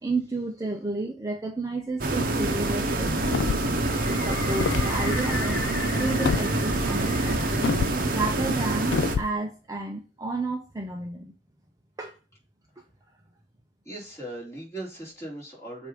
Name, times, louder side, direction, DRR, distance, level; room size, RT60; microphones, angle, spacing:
voice 1, 0.0-3.7 4.0-5.6 6.0-7.8 8.1-11.3 12.0-12.2, right 3 dB, 20° right, 2 dB, 0.6 m, -32 dB
sound 1, 1.8-7.9, left 3 dB, 85° left, 1.0 m, -36 dB
sound 2, 2.0-9.2, right 2 dB, 45° right, 0.8 m, -26 dB
sound 3, 3.2-3.8 4.5-4.9 6.2-6.5 7.6-8.0 8.9-9.3, left 5 dB, 65° left, 0.3 m, -26 dB
voice 2, 13.8-15.9, right 1 dB, 15° left, -5 dB, 2.5 m, -38 dB
7.8 x 2.6 x 4.9 m, 0.32 s
head